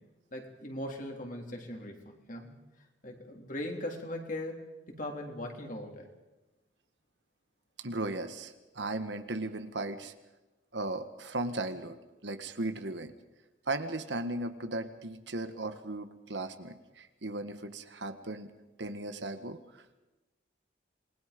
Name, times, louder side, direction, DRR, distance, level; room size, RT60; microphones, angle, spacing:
voice 1, 0.3-2.6 3.0-4.6 4.9-6.1, left 1 dB, 45° left, 2 dB, 3.5 m, -39 dB
voice 2, 7.8-10.1 10.7-13.1 13.7-18.5 18.8-19.8, right 2 dB, 75° right, 9 dB, 1.6 m, -37 dB
27.5 x 20.5 x 5.3 m, 1.1 s
head